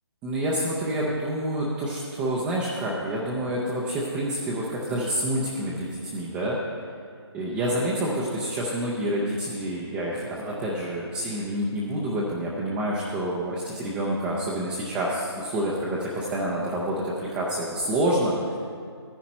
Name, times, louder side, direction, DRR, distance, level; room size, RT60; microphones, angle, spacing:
voice 1, 0.2-6.6 7.3-18.6, right 1 dB, 5° right, -5 dB, 0.5 m, -28 dB
13.0 x 10.5 x 4.3 m, 2.2 s
hypercardioid pair, 165°, 14 cm